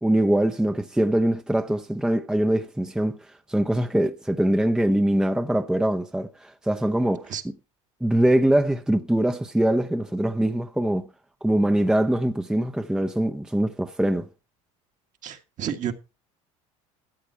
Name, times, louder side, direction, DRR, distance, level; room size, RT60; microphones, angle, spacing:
voice 1, 0.0-7.5 8.0-11.1 11.4-14.3, right 1 dB, 5° right, 0.8 m, -23 dB
voice 2, 15.2-15.9, right 9 dB, 45° right, 1.7 m, -30 dB
13.5 x 8.6 x 4.6 m
hypercardioid pair, 80°, 17 cm